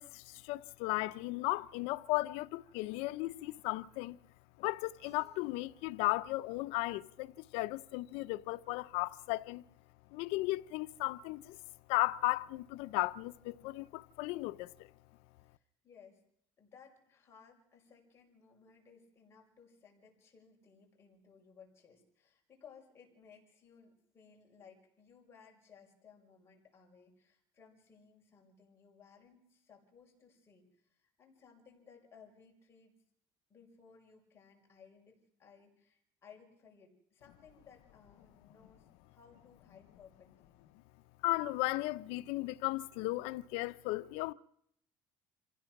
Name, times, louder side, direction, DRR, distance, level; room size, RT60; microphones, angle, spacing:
voice 1, 0.0-4.2 4.6-9.6 10.1-11.6 11.9-14.9 41.2-44.3, left 20 dB, 85° left, 0.7 m, -35 dB
Keyboard (musical), 5.0-7.9, right 2 dB, 85° right, 5.2 m, -71 dB
voice 2, 15.4-16.2 16.6-32.9 33.5-40.6, left 6 dB, 25° left, 5.3 m, -61 dB
27.0 x 16.0 x 6.0 m
cardioid pair, 145°, 10 cm